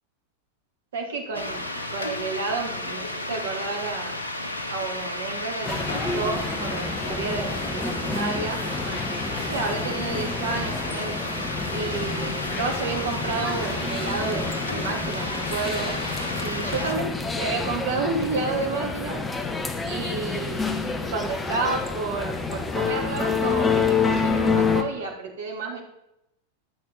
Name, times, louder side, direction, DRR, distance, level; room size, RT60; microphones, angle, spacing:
voice 1, 0.9-4.1 4.7-8.6 9.5-11.2 11.7-16.0 16.4-19.2 19.8-25.8, right 4 dB, 60° right, 1 dB, 3.2 m, -31 dB
sound 1, 1.3-16.9, left 1 dB, 80° left, 1.3 m, -32 dB
sound 2, 5.6-24.8, left 4 dB, 15° left, 1.2 m, -28 dB
12.0 x 6.6 x 7.8 m, 0.82 s
figure-of-eight pair, 90°, 0 cm